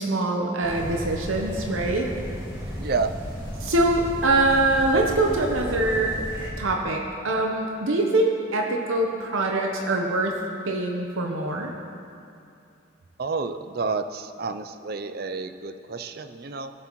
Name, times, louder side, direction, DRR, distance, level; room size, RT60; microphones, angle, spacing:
voice 1, 0.0-2.1 3.6-6.2 6.6-11.7, right 2 dB, 80° right, 1 dB, 0.8 m, -24 dB
sound 1, 0.6-6.5, equal, 20° right, 2.3 m, -34 dB
voice 2, 2.8-3.1 13.2-16.7, right 4 dB, 50° right, 9 dB, 0.4 m, -30 dB
17.5 x 7.7 x 3.1 m, 2.5 s
head